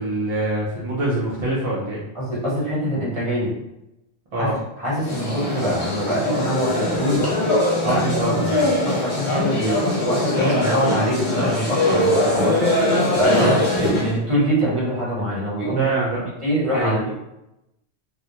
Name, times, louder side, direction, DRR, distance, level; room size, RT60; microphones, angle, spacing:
voice 1, 0.0-2.0 4.3-4.6 7.8-8.7 13.4-13.6 15.7-16.3 16.7-17.0, right 2 dB, 50° right, -6 dB, 0.4 m, -24 dB
voice 2, 2.1-3.5 4.4-4.5 4.8-7.3 7.9-8.3 8.8-12.7 13.1-15.9 16.4-17.1, equal, 30° right, -7 dB, 1.0 m, -23 dB
sound 1, 5.0-14.2, left 1 dB, 50° left, 0.8 m, -22 dB
2.2 x 2.1 x 2.8 m, 0.88 s
omnidirectional pair, 1.0 m